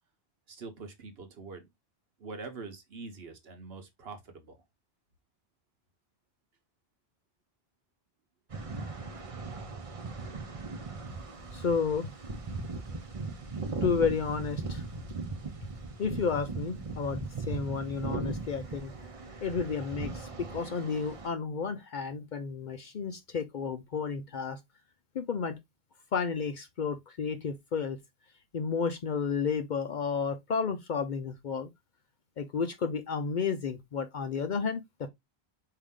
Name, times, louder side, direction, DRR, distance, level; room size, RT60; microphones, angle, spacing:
voice 1, 0.5-1.7 2.2-4.5, right 4 dB, 65° right, 1.2 m, -44 dB
sound 1, 8.5-21.3, right 3 dB, 35° right, 0.8 m, -38 dB
voice 2, 11.5-12.1 13.8-14.8 16.0-18.9 19.4-24.6 25.1-25.6 26.1-28.0 28.5-31.7 32.4-35.1, left 5 dB, 55° left, 0.6 m, -32 dB
4.9 x 2.8 x 3.6 m
omnidirectional pair, 1.1 m